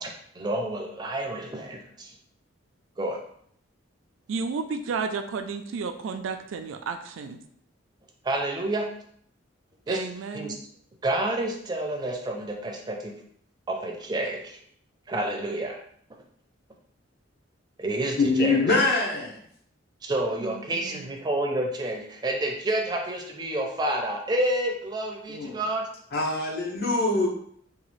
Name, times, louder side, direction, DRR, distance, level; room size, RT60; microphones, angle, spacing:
voice 1, 0.0-2.1 3.0-3.2 8.2-8.9 9.9-10.0 10.3-10.5 11.0-13.1 13.7-14.6 15.1-15.8 17.8-18.6 20.0-25.9, right 1 dB, 20° right, 0.5 m, -29 dB
voice 2, 4.3-7.4 9.9-10.6 20.4-21.1, right 5 dB, 85° right, 0.4 m, -32 dB
voice 3, 18.2-19.3 25.3-25.6 26.1-27.3, left 3 dB, 55° left, 0.7 m, -24 dB
2.9 x 2.3 x 3.1 m
head